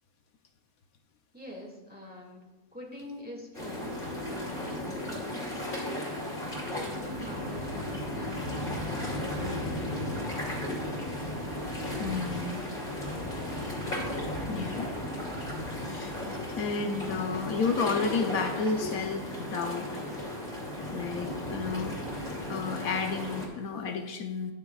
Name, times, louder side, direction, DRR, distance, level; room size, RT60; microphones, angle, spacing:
voice 1, 1.3-2.5 2.7-11.3, left 1 dB, 5° right, -2 dB, 2.0 m, -46 dB
sound 1, 3.5-23.5, left 1 dB, 35° left, 2.9 m, -35 dB
voice 2, 12.0-12.6 14.5-14.9 15.7-16.1 16.5-19.9 20.9-22.0 22.5-24.5, left 4 dB, 75° left, 5 dB, 1.2 m, -31 dB
20.5 x 6.9 x 2.4 m, 1.1 s
omnidirectional pair, 1.5 m